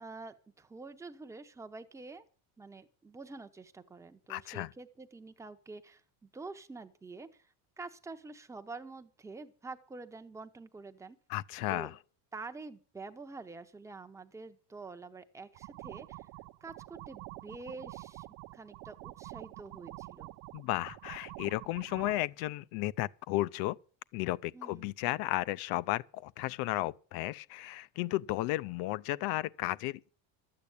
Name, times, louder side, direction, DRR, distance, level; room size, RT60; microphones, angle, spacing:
voice 1, 0.0-2.2 2.6-11.2 11.7-11.9 12.3-16.3 16.6-18.3 18.5-20.3 24.5-24.9, right 3 dB, 5° right, 0.8 m, -47 dB
voice 2, 4.3-4.7 11.3-11.9 20.5-23.8 24.1-30.1, left 17 dB, 60° left, 0.6 m, -34 dB
sound 1, 15.5-22.2, right 19 dB, 70° right, 0.8 m, -47 dB
13.0 x 8.7 x 8.3 m
cardioid pair, 165°, 42 cm